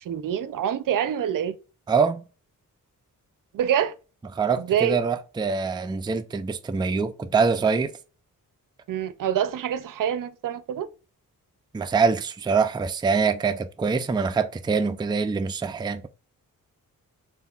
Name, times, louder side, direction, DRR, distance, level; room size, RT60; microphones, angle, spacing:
voice 1, 0.0-1.6 3.5-3.9 4.6-5.0 8.9-10.9, right 9 dB, 70° right, 0.5 m, -26 dB
voice 2, 1.9-2.2 4.3-7.9 11.7-16.1, right 5 dB, 15° right, 0.4 m, -24 dB
6.9 x 2.6 x 2.3 m
cardioid pair, 80°, 34 cm